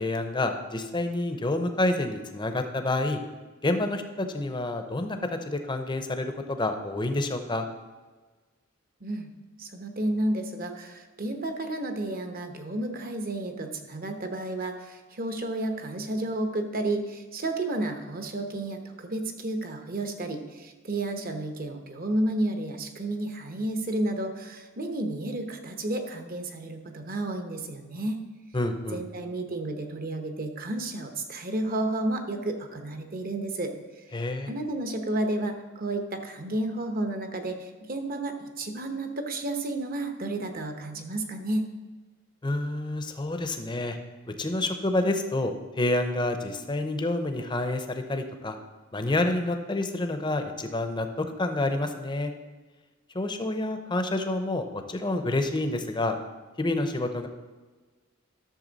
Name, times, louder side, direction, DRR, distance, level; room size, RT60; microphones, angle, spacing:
voice 1, 0.0-3.2 3.6-7.7 28.5-29.0 34.1-34.5 42.4-44.0 44.3-48.6 48.9-52.3 53.1-56.2 56.6-57.3, left 2 dB, 20° left, 7 dB, 0.7 m, -28 dB
voice 2, 9.6-28.2 28.9-33.7 34.5-41.7, right 1 dB, 45° right, 5 dB, 1.0 m, -31 dB
12.0 x 6.8 x 4.0 m, 1.3 s
head